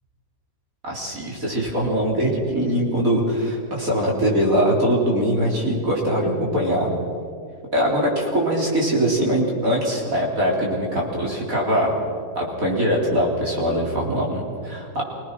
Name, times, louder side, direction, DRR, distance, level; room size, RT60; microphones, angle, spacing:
voice 1, 0.8-6.9 7.7-11.9 12.3-15.0, equal, 45° right, -2 dB, 4.3 m, -22 dB
25.5 x 18.5 x 6.1 m, 2.3 s
omnidirectional pair, 2.1 m